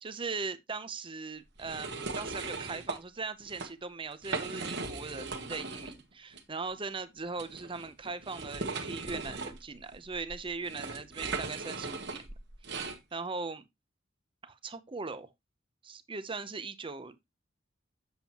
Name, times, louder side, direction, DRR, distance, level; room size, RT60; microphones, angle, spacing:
voice 1, 0.0-12.2 13.1-13.6 14.4-15.3 15.8-17.3, right 4 dB, 25° right, 0.7 m, -39 dB
sound 1, 1.6-3.0 3.4-3.7 4.1-6.0 6.3-6.4 7.4-13.0, right 3 dB, 60° right, 1.3 m, -38 dB
7.6 x 7.2 x 2.9 m
head